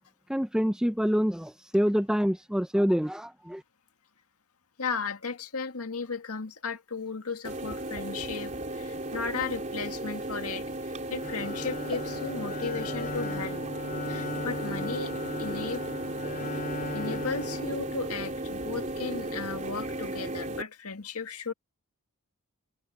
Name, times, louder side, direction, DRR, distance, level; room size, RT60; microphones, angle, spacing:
voice 1, 0.3-3.6, equal, 5° right, 0.6 m, -26 dB
voice 2, 4.8-13.7 14.1-15.1 15.4-15.9 16.9-21.5, left 5 dB, 85° left, 1.9 m, -35 dB
sound 1, 7.4-20.6, right 1 dB, 35° right, 3.5 m, -35 dB
Bowed string instrument, 11.2-18.4, left 2 dB, 40° left, 3.3 m, -38 dB
head